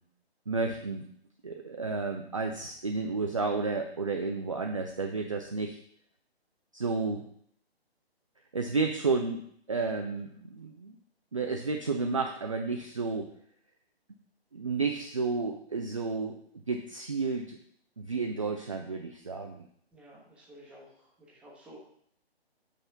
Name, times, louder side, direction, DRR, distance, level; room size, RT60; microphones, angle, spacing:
voice 1, 0.5-1.1 1.4-5.8 6.7-7.2 8.5-9.4 9.7-10.9 11.3-13.3 14.5-16.4 16.7-17.6 18.0-19.6, right 4 dB, 30° right, 3 dB, 0.4 m, -31 dB
voice 2, 19.9-21.8, right 1 dB, 5° right, -6 dB, 1.0 m, -53 dB
5.7 x 4.1 x 5.8 m, 0.65 s
figure-of-eight pair, 140°, 32 cm